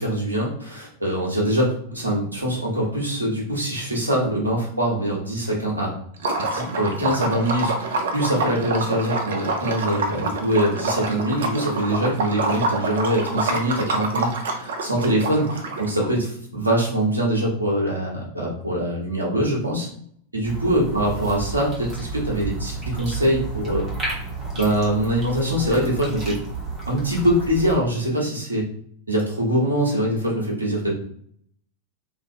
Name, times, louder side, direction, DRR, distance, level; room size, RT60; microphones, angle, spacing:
voice 1, 0.0-5.9 6.4-19.9 20.3-23.8 24.5-26.4 26.9-28.7 29.1-31.0, right 1 dB, 80° right, -2 dB, 0.9 m, -23 dB
Liquid, 6.2-16.1, right 2 dB, 60° right, 0.5 m, -27 dB
sound 1, 20.4-27.8, right 4 dB, 30° right, 1.1 m, -32 dB
2.6 x 2.4 x 2.7 m, 0.65 s
figure-of-eight pair, 90°, 0 cm